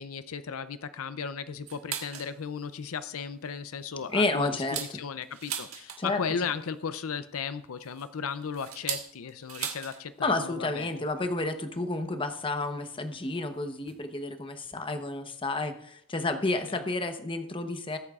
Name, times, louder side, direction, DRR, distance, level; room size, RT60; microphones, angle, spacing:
voice 1, 0.0-11.0 16.7-16.8, left 6 dB, 90° left, 12 dB, 0.5 m, -36 dB
sound 1, 1.7-2.3 2.8-2.9 3.3-3.5 4.0-6.3 7.5-10.0 10.3-10.4 10.7-11.0 11.9-12.0 12.9-13.0 13.9-14.0 14.4-14.5 14.6-14.8, right 9 dB, 85° right, 1.5 m, -38 dB
voice 2, 4.1-4.8 6.0-6.2 10.2-18.0, left 2 dB, 25° left, 7 dB, 0.9 m, -30 dB
21.0 x 8.7 x 2.4 m, 0.74 s
head